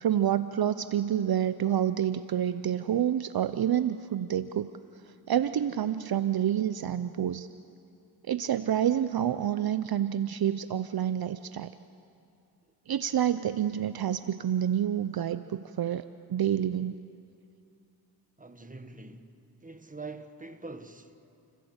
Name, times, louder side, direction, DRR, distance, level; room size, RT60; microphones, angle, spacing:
voice 1, 0.0-4.7 5.3-7.5 8.3-11.7 12.9-17.0, right 10 dB, 60° right, 0.7 m, -28 dB
voice 2, 18.4-19.3 19.6-21.2, right 3 dB, 20° right, 1.6 m, -44 dB
30.0 x 16.0 x 8.0 m
cardioid pair, 60°, 42 cm